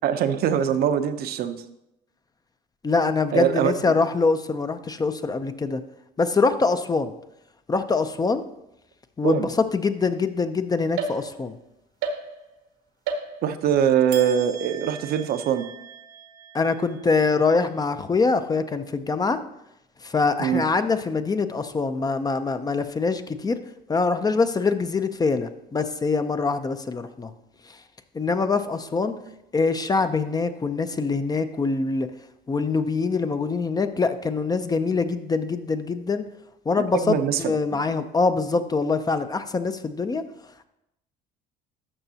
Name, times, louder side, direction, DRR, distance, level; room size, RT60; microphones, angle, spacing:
voice 1, 0.0-1.6 3.3-3.7 9.2-9.5 13.4-15.6 20.4-20.6 36.8-37.8, right 9 dB, 60° right, 9 dB, 0.7 m, -23 dB
voice 2, 2.8-5.8 6.2-7.1 7.7-8.5 9.2-11.6 16.5-19.4 20.0-23.6 23.9-27.3 28.1-29.1 29.5-32.1 32.5-36.2 36.7-40.2, left 4 dB, 20° left, 10 dB, 0.5 m, -24 dB
sound 1, 11.0-11.6 12.0-12.7 13.1-13.7 14.1-17.6, right 5 dB, 80° right, 1.1 m, -35 dB
12.5 x 5.9 x 2.8 m, 0.85 s
supercardioid pair, 85°, 17 cm